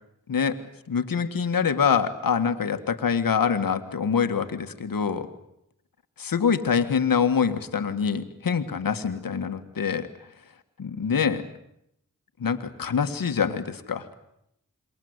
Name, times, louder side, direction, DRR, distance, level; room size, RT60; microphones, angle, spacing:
voice 1, 0.3-0.6 0.9-5.3 6.2-10.1 10.8-11.4 12.4-14.1, left 6 dB, 90° left, 8 dB, 1.7 m, -25 dB
28.0 x 23.0 x 8.1 m, 0.78 s
cardioid pair, 40°, 33 cm